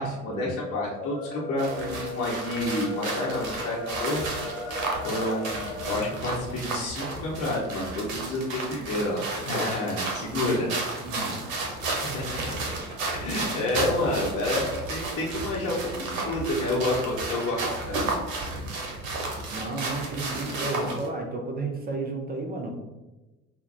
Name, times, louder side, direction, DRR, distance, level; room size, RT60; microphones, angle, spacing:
voice 1, 0.0-4.2 5.0-10.7 12.0-12.2 13.1-18.2 20.5-20.9, left 1 dB, 35° left, -6 dB, 0.9 m, -29 dB
sound 1, 0.9-6.2, left 3 dB, 75° left, 0.7 m, -37 dB
sound 2, 1.6-21.1, right 3 dB, 65° right, 0.8 m, -33 dB
voice 2, 11.0-11.5 19.5-22.7, right 2 dB, 20° right, 2 dB, 0.6 m, -33 dB
5.6 x 2.2 x 2.6 m, 1.1 s
figure-of-eight pair, 60°, 42 cm